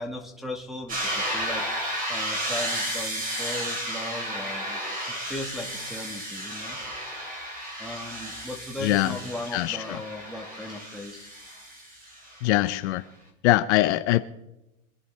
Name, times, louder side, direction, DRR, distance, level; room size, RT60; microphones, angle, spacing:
voice 1, 0.0-1.6 2.1-6.8 7.8-11.3, left 1 dB, ahead, 4 dB, 1.7 m, -37 dB
sound 1, 0.9-12.6, equal, 20° right, 3.0 m, -33 dB
voice 2, 8.8-9.2 9.5-9.8 12.4-13.0 13.4-14.2, left 16 dB, 55° left, 10 dB, 0.7 m, -22 dB
25.5 x 11.0 x 3.3 m, 0.94 s
supercardioid pair, 155°, 40 cm